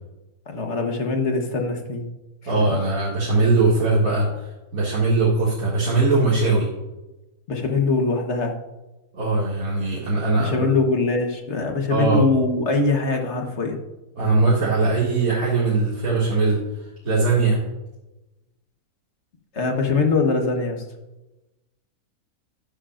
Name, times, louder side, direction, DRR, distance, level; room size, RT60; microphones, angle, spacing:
voice 1, 0.5-2.1 2.4-2.8 7.5-8.6 10.4-13.8 19.5-20.8, left 3 dB, 50° left, 3 dB, 1.5 m, -23 dB
voice 2, 2.5-6.7 9.1-10.7 11.9-12.3 14.2-16.6 17.0-17.6, right 3 dB, 65° right, -7 dB, 2.6 m, -20 dB
12.0 x 10.0 x 2.5 m, 1.0 s
omnidirectional pair, 1.6 m